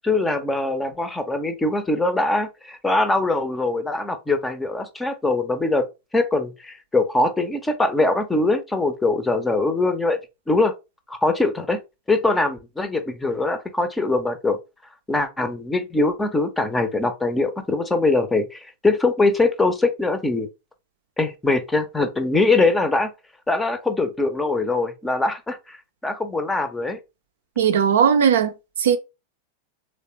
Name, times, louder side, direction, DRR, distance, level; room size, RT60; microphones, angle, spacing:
voice 1, 0.0-5.9 6.1-10.2 10.5-10.7 11.1-11.8 12.1-14.6 15.1-20.5 21.2-23.1 23.5-25.8 26.0-27.0, left 2 dB, 10° left, 0.6 m, -22 dB
voice 2, 27.6-28.5 28.8-29.0, right 7 dB, 60° right, 0.5 m, -17 dB
3.2 x 3.2 x 2.9 m
figure-of-eight pair, 90°, 0 cm